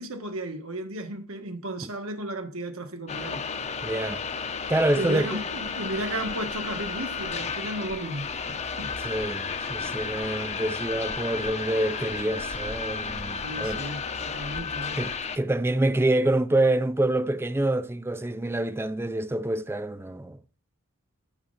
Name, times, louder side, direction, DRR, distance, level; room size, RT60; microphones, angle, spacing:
voice 1, 0.0-3.5 5.0-8.3 8.8-8.9 13.4-15.0, right 1 dB, 70° right, 1.5 m, -34 dB
sound 1, 3.1-15.4, left 5 dB, 30° left, 0.7 m, -33 dB
voice 2, 3.8-4.2 4.7-5.4 9.0-13.8 15.0-20.4, right 1 dB, 10° right, 0.4 m, -26 dB
8.8 x 6.6 x 5.7 m
head